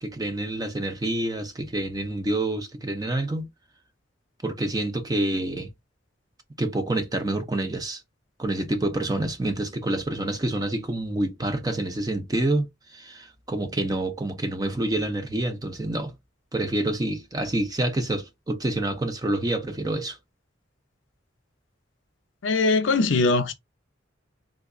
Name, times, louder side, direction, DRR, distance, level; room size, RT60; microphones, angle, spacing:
voice 1, 0.0-3.5 4.4-5.7 6.6-8.0 8.4-16.1 16.5-20.2, right 1 dB, 20° right, 0.6 m, -27 dB
voice 2, 22.4-23.5, left 3 dB, 70° left, 0.6 m, -21 dB
3.7 x 2.8 x 2.6 m
head